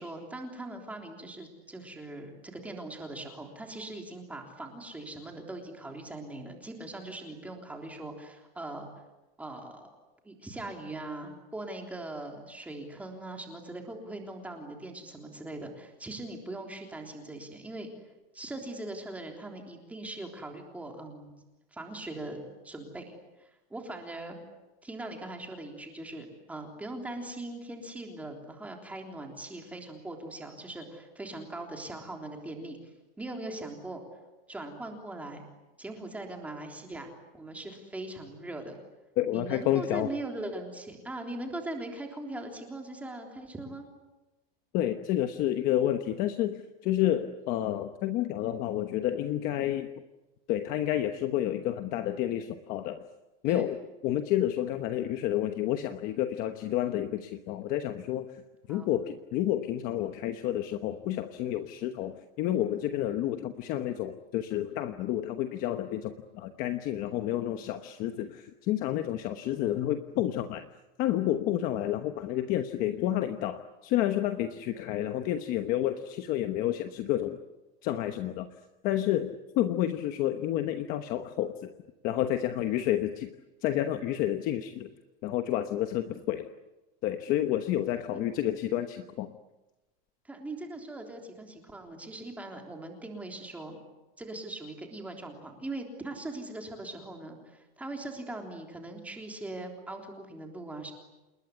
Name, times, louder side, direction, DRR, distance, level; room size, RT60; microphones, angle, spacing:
voice 1, 0.0-8.9 9.4-10.0 10.2-17.9 18.3-21.3 21.7-23.1 23.4-24.4 24.8-32.8 33.2-34.0 34.5-35.4 35.8-38.8 39.3-43.9 53.5-53.7 56.4-56.5 58.7-58.9 67.4-67.7 82.6-82.9 86.1-86.3 88.1-88.2 90.2-93.8 94.2-100.9, right 2 dB, 5° right, 2 dB, 3.5 m, -41 dB
voice 2, 39.2-40.1 44.7-49.9 50.5-53.0 53.4-58.4 58.7-70.7 71.0-77.4 77.8-78.5 78.8-81.7 82.0-83.3 83.6-84.9 85.2-86.5 87.0-89.3, left 12 dB, 30° left, 8 dB, 1.1 m, -30 dB
28.0 x 21.0 x 9.7 m, 1.1 s
supercardioid pair, 175°, 30 cm